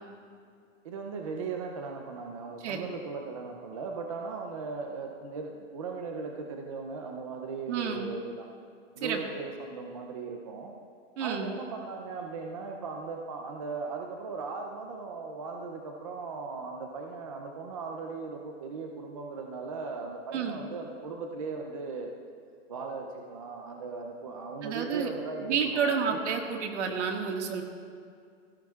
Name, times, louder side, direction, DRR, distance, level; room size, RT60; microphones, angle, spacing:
voice 1, 0.8-8.5 9.0-10.8 11.2-22.1 22.7-26.2, right 4 dB, 25° right, 2 dB, 0.5 m, -38 dB
voice 2, 7.7-8.1 9.0-9.2 11.2-11.5 20.3-20.6 24.6-25.1 25.4-27.6, right 6 dB, 60° right, 2 dB, 1.8 m, -30 dB
20.0 x 16.5 x 2.4 m, 2.3 s
supercardioid pair, 175°, 39 cm